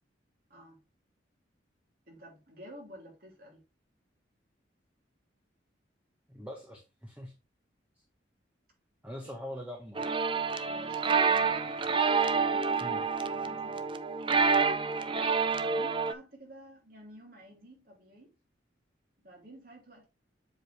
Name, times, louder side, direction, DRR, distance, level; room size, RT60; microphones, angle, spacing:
voice 1, 0.5-0.8 2.1-3.6 9.2-9.3 10.7-11.8 12.4-14.0 15.4-18.3 19.2-20.1, right 1 dB, 50° right, 3.1 m, -51 dB
voice 2, 6.3-7.3 9.0-10.0 12.8-13.0, equal, 10° right, 1.2 m, -42 dB
sound 1, 9.9-16.1, right 5 dB, 25° right, 0.5 m, -28 dB
7.7 x 4.9 x 3.4 m
head